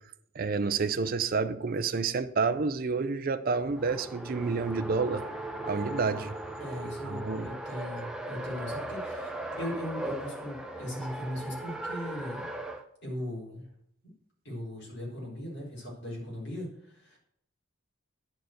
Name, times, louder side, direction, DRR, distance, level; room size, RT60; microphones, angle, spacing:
voice 1, 0.3-5.3 5.6-6.3 7.1-7.5, right 4 dB, 40° right, 0.5 m, -29 dB
Race car auto racing, 3.6-12.8, right 1 dB, 5° right, 0.7 m, -38 dB
voice 2, 6.6-12.5 13.0-13.6 14.4-17.2, equal, 55° left, 4.2 m, -38 dB
10.0 x 4.5 x 7.8 m
head